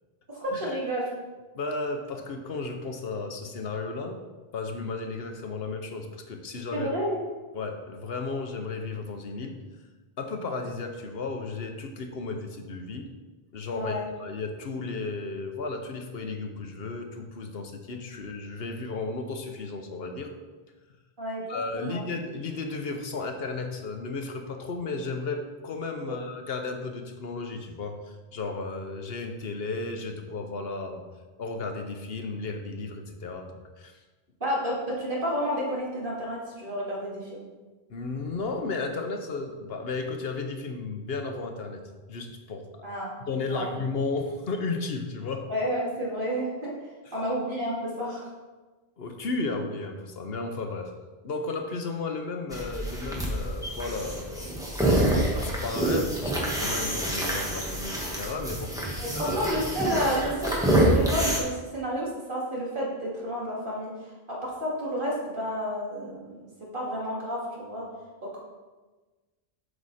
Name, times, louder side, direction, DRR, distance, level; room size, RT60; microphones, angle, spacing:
voice 1, 0.3-1.1 6.7-7.2 13.7-14.1 21.2-21.5 21.8-22.0 26.0-26.2 34.4-37.4 42.8-43.2 43.5-43.7 45.5-46.7 47.1-48.3 59.0-63.9 64.4-66.5 66.7-67.8, equal, 55° right, -5 dB, 2.5 m, -30 dB
voice 2, 1.5-4.2 4.5-6.9 7.5-9.6 10.2-13.1 13.5-20.3 21.5-31.0 31.4-33.5 33.8-34.0 37.9-41.8 42.1-42.9 43.3-45.5 47.1-47.2 49.0-50.9 51.2-54.9 55.3-59.5, left 3 dB, 75° left, 5 dB, 1.1 m, -34 dB
sound 1, 52.5-61.4, right 1 dB, 5° right, 1.5 m, -27 dB
7.9 x 6.4 x 4.2 m, 1.3 s
omnidirectional pair, 1.0 m